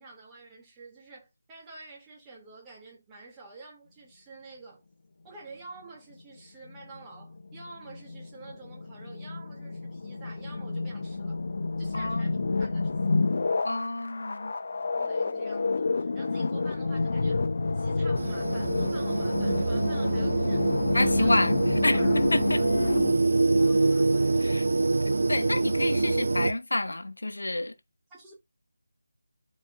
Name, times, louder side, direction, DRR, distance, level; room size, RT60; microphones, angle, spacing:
voice 1, 0.0-4.8 5.2-11.4 11.8-12.9 15.0-17.5 17.7-21.3 21.9-24.6 28.1-28.4, right 3 dB, 10° right, 2.8 m, -49 dB
sound 1, 6.7-23.1, left 3 dB, 45° left, 0.8 m, -29 dB
voice 2, 11.9-12.7 13.6-14.5 20.9-21.6 21.8-22.6 24.4-24.6 25.3-27.7, left 2 dB, 70° left, 1.1 m, -29 dB
sound 2, 18.2-26.5, right 3 dB, 55° right, 0.8 m, -25 dB
12.0 x 4.4 x 2.6 m
figure-of-eight pair, 160°, 0 cm